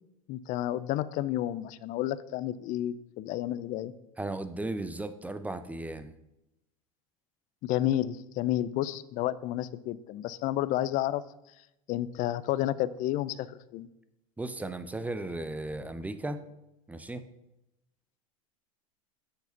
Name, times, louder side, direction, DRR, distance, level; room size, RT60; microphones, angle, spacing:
voice 1, 0.3-3.9 7.6-11.2 11.9-13.9, left 13 dB, 45° left, 16 dB, 0.6 m, -31 dB
voice 2, 4.2-6.1 14.4-16.4 16.9-17.3, right 2 dB, 10° right, 11 dB, 0.7 m, -36 dB
8.0 x 6.8 x 5.8 m, 0.90 s
hypercardioid pair, 80°, 18 cm